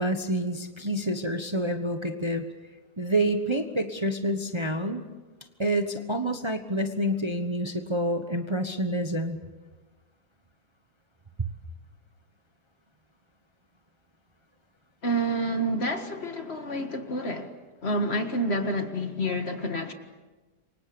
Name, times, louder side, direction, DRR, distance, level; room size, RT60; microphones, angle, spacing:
voice 1, 0.0-2.5 3.0-5.0 5.6-9.4, right 1 dB, 20° right, 1.2 m, -28 dB
voice 2, 15.0-17.5 17.8-19.9, right 1 dB, 40° left, 2.0 m, -28 dB
28.0 x 24.5 x 7.0 m
omnidirectional pair, 1.7 m